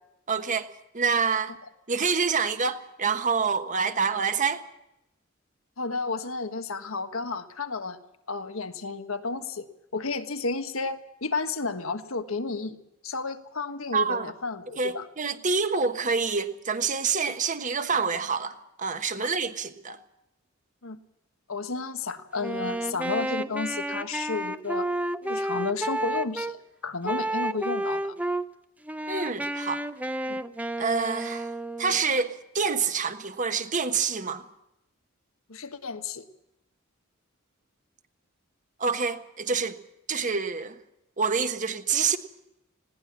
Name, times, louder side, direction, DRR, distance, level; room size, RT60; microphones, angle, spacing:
voice 1, 0.3-1.5 1.9-4.6 13.9-14.2 14.8-20.0 29.1-29.8 30.8-31.5 31.8-34.4 38.8-39.8 40.1-40.7 41.2-42.2, right 5 dB, 40° right, 1.3 m, -27 dB
voice 2, 5.8-8.0 8.3-9.7 9.9-12.8 13.0-15.1 19.2-19.3 20.8-21.0 21.5-24.9 25.2-28.1 30.3-30.4 35.5-36.2, left 4 dB, 80° left, 1.4 m, -32 dB
Wind instrument woodwind instrument, 22.4-26.6 27.0-28.5 28.9-32.1, right 1 dB, 5° right, 0.7 m, -31 dB
20.0 x 17.5 x 7.3 m
head